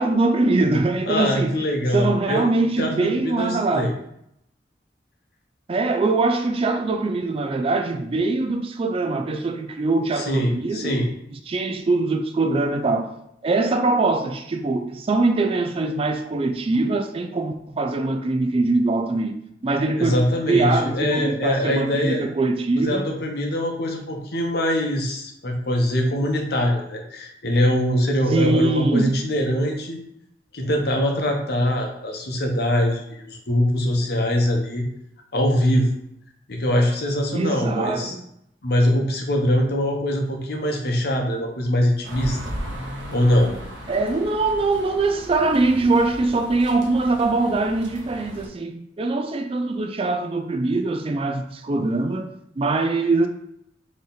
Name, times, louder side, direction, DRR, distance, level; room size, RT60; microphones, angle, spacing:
voice 1, 0.0-1.6 1.9-4.0 5.7-10.9 11.5-13.2 13.4-19.3 19.6-20.2 20.5-23.1 28.3-29.1 37.3-38.2 43.9-52.3 52.6-53.3, right 3 dB, 30° right, 0.4 m, -22 dB
voice 2, 1.1-2.5 2.8-3.9 10.1-11.1 20.0-22.3 22.8-30.0 30.5-34.8 35.3-35.9 36.5-38.1 38.6-42.4 43.1-43.5, equal, 60° left, 0.9 m, -23 dB
sound 1, 42.0-48.5, equal, 85° right, 0.9 m, -36 dB
4.1 x 3.1 x 4.0 m
head